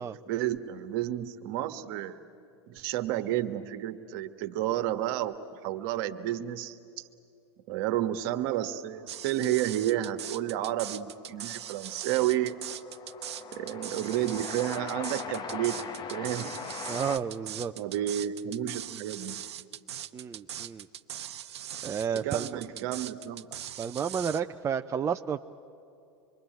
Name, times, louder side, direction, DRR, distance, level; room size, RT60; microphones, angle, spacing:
voice 1, 0.3-2.2 2.7-7.1 7.7-12.6 13.5-15.8 16.1-16.6 17.8-19.4 22.1-23.5, right 12 dB, 55° right, 9 dB, 1.5 m, -31 dB
sound 1, 9.1-24.4, right 11 dB, 75° right, 0.9 m, -40 dB
Train, 9.8-9.9 10.1-17.2, left 6 dB, 30° left, 1.2 m, -41 dB
voice 2, 16.9-17.7 20.1-20.9 21.8-22.6 23.8-25.4, right 7 dB, 20° right, 7 dB, 0.6 m, -31 dB
26.0 x 22.5 x 9.1 m, 2.8 s
hypercardioid pair, 95°, 14 cm